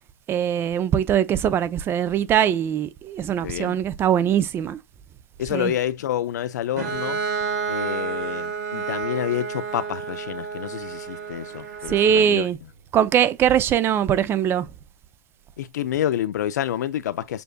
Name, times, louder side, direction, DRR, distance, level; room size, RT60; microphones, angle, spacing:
voice 1, 0.3-4.8 5.5-5.7 11.9-12.6 12.9-14.7, right 9 dB, 25° right, 0.4 m, -21 dB
voice 2, 3.4-3.8 5.4-7.2 7.7-12.5 15.6-17.4, left 11 dB, 75° left, 0.4 m, -28 dB
Bowed string instrument, 6.8-12.4, right 5 dB, 70° right, 1.2 m, -30 dB
6.9 x 2.6 x 2.2 m
hypercardioid pair, 125°, 9 cm